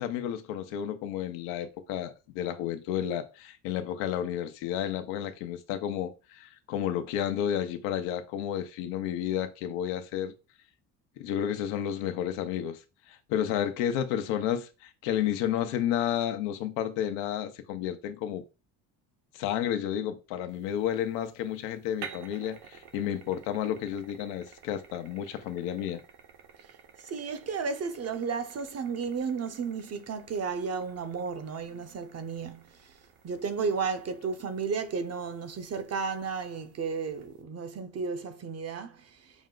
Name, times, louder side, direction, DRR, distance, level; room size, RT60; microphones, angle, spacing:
voice 1, 0.0-10.3 11.2-12.8 13.1-18.4 19.3-26.0, left 10 dB, 85° left, 0.8 m, -31 dB
sound 1, 20.5-37.4, right 7 dB, 65° right, 1.1 m, -52 dB
voice 2, 27.0-32.6 33.2-39.3, right 5 dB, 35° right, 0.7 m, -33 dB
6.1 x 2.1 x 3.8 m
supercardioid pair, 85°, 43 cm